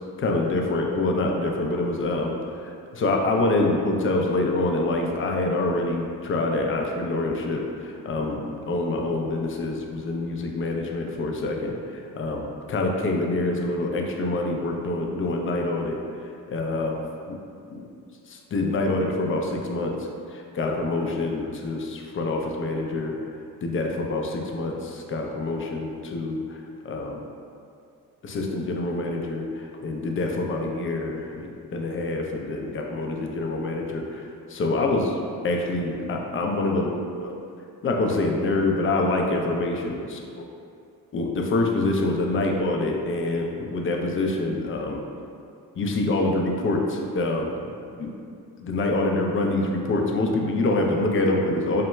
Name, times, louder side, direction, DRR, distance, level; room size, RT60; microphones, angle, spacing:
voice 1, 0.2-16.0 16.5-17.4 17.7-17.8 18.3-23.2 23.6-27.2 28.2-35.2 35.4-37.3 37.8-40.0 41.1-45.0 45.8-47.5 48.0-48.1 48.6-51.8, left 2 dB, 35° left, 1 dB, 0.4 m, -26 dB
2.2 x 2.1 x 3.0 m, 2.4 s
supercardioid pair, 45°, 41 cm